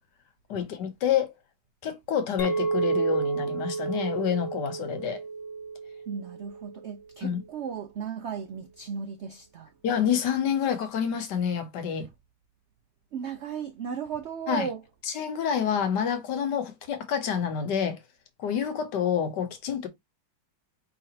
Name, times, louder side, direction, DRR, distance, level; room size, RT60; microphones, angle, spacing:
voice 1, 0.5-1.3 1.8-5.2 7.2-7.4 9.8-12.1 14.5-14.7 15.1-18.0 18.4-19.9, left 8 dB, 75° left, 1.5 m, -28 dB
Chink clink, 2.4-6.9, right 4 dB, 55° left, 1.1 m, -31 dB
voice 2, 6.1-9.7 13.1-14.8, right 7 dB, 85° right, 0.6 m, -35 dB
5.1 x 3.4 x 2.8 m
omnidirectional pair, 1.9 m